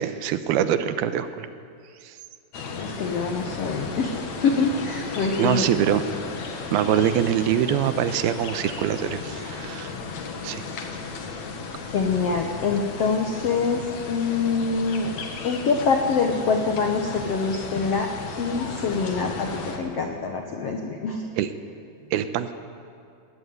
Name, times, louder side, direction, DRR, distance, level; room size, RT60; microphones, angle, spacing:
voice 1, 0.0-1.5 2.0-2.1 5.4-6.0 6.7-9.9 10.4-10.6 21.4-21.5 22.1-22.5, right 10 dB, 85° right, 10 dB, 2.8 m, -24 dB
sound 1, 2.5-19.8, left 4 dB, 55° left, 2.5 m, -35 dB
voice 2, 2.8-4.2 4.4-6.0 11.9-15.1 15.4-18.1 18.4-21.2, left 4 dB, 75° left, 3 dB, 1.4 m, -25 dB
20.0 x 15.5 x 9.4 m, 2.4 s
omnidirectional pair, 4.5 m